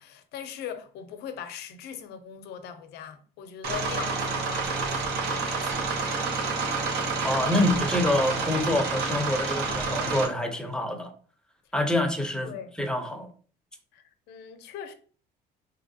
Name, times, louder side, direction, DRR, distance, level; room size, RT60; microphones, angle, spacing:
voice 1, 0.0-6.2 12.4-12.7 13.9-14.9, left 8 dB, 75° left, 0.5 m, -41 dB
sound 1, 3.6-10.3, right 4 dB, 75° right, 0.8 m, -28 dB
voice 2, 7.2-11.1 11.7-12.5 12.8-13.3, left 1 dB, 5° left, 0.6 m, -26 dB
3.3 x 2.7 x 2.6 m
cardioid pair, 110°, 17 cm